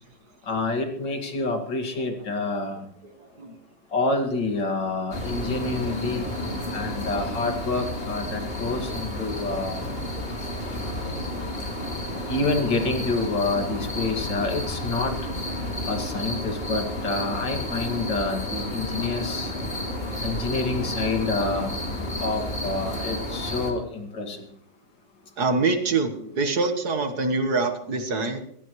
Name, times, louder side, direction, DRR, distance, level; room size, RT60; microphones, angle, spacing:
voice 1, 0.5-2.8 3.9-6.2 6.7-9.8 12.3-15.1 15.8-19.5 20.2-21.7 22.2-24.5, left 3 dB, 80° left, 3 dB, 3.0 m, -27 dB
voice 2, 3.2-3.6 25.4-28.4, right 3 dB, 65° right, 7 dB, 2.0 m, -25 dB
sound 1, 5.1-23.7, left 1 dB, 30° left, 3.3 m, -31 dB
23.0 x 17.0 x 3.2 m, 0.70 s
omnidirectional pair, 1.9 m